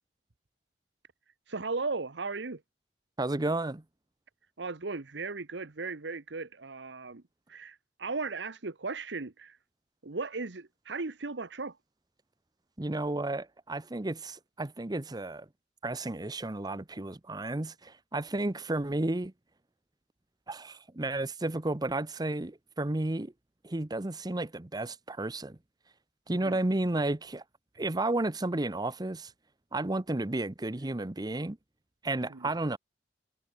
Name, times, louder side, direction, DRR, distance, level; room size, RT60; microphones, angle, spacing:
voice 1, 1.5-2.6 4.6-7.2 7.5-9.6 10.0-11.8 26.3-26.6 32.3-32.5, right 3 dB, 85° right, 1.1 m, -36 dB
voice 2, 3.2-3.8 12.8-15.5 15.8-19.3 20.5-23.3 23.6-25.6 26.3-27.4 27.8-29.3 29.7-31.6 32.0-32.8, right 2 dB, 25° right, 0.8 m, -32 dB
head